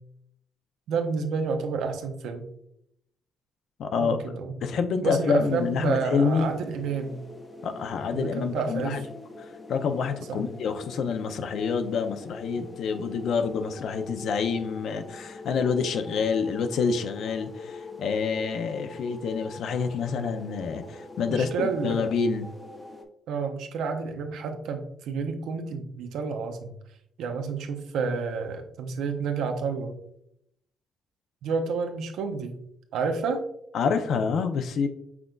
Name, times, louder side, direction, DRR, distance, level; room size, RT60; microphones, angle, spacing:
voice 1, 0.9-2.5 4.0-4.5 5.0-7.2 8.1-9.0 10.3-10.4 21.3-22.0 23.3-26.7 27.2-29.9 31.4-32.6 32.9-33.4, right 5 dB, 85° right, 6 dB, 0.6 m, -30 dB
voice 2, 3.8-4.2 4.6-6.5 7.6-9.0 9.4-22.5 33.7-34.9, left 5 dB, 70° left, 8 dB, 0.5 m, -27 dB
sound 1, 5.5-23.1, left 3 dB, 25° left, 0.6 m, -44 dB
5.9 x 3.8 x 2.3 m, 0.76 s
cardioid pair, 90°, 0 cm